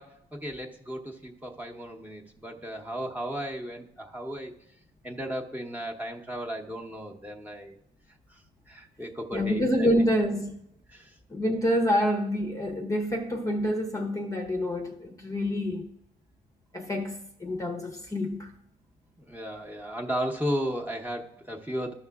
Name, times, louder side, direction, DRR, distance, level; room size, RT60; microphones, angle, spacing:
voice 1, 0.0-4.5 5.0-7.8 8.7-9.9 10.9-11.1 12.0-12.1 19.2-21.9, equal, 10° right, 1.0 m, -35 dB
voice 2, 9.3-10.5 11.3-15.9 16.7-18.5, equal, 15° left, 0.8 m, -27 dB
14.0 x 5.6 x 2.3 m
cardioid pair, 90°, 20 cm